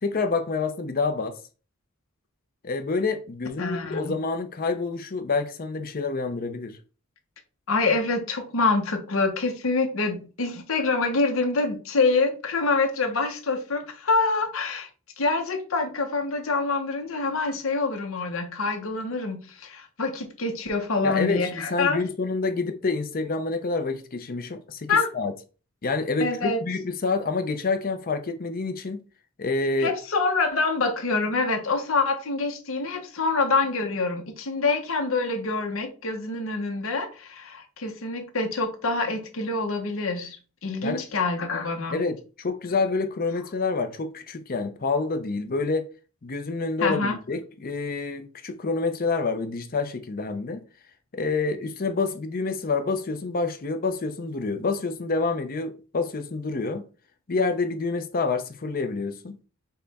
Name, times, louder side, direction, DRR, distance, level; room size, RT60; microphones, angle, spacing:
voice 1, 0.0-1.4 2.6-6.8 21.0-25.3 25.8-29.0 29.4-29.9 40.8-41.0 41.9-45.9 46.2-50.6 51.1-56.8 57.3-59.4, left 3 dB, 45° left, 0.6 m, -27 dB
voice 2, 3.6-4.2 7.7-14.9 15.2-22.0 24.9-25.1 26.2-26.6 29.8-42.0 46.8-47.2, left 3 dB, 70° left, 0.9 m, -26 dB
5.5 x 2.2 x 4.1 m
head